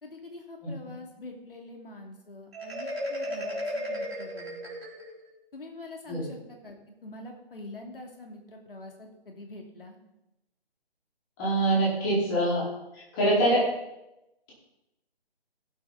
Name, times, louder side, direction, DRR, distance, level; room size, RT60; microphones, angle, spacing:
voice 1, 0.0-4.8 5.5-6.8 7.0-10.0, left 2 dB, 60° left, 2 dB, 2.8 m, -45 dB
voice 2, 0.6-0.9 6.1-6.3 11.4-12.6 12.9-13.6, right 1 dB, 20° left, -7 dB, 4.7 m, -25 dB
Marimba xylophone, 2.5-5.3, equal, 75° right, 4.0 m, -34 dB
15.5 x 8.5 x 4.2 m, 0.92 s
figure-of-eight pair, 150°, 32 cm